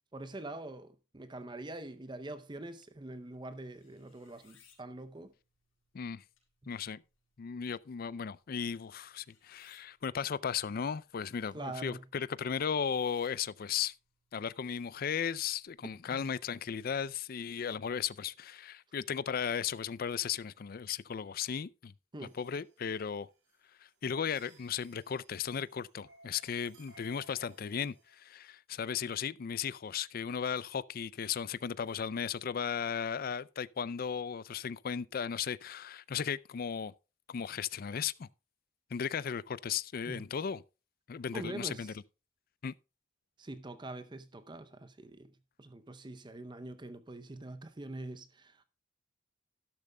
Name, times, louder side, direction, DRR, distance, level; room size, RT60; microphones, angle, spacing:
voice 1, 0.1-5.3 11.5-12.0 16.1-16.3 22.1-22.4 40.0-40.2 41.3-42.0 43.4-45.3 45.6-48.7, right 2 dB, 25° right, 0.6 m, -44 dB
bass guitar string, 2.9-16.3, left 7 dB, 85° left, 4.8 m, -70 dB
voice 2, 6.7-7.0 7.4-13.9 14.3-21.9 22.3-23.3 24.0-36.9 37.3-38.3 38.9-40.6 41.1-41.9 42.6-42.7, left 7 dB, 45° left, 0.4 m, -36 dB
sound 1, 22.2-28.3, right 2 dB, 80° right, 3.3 m, -61 dB
12.0 x 12.0 x 2.2 m
head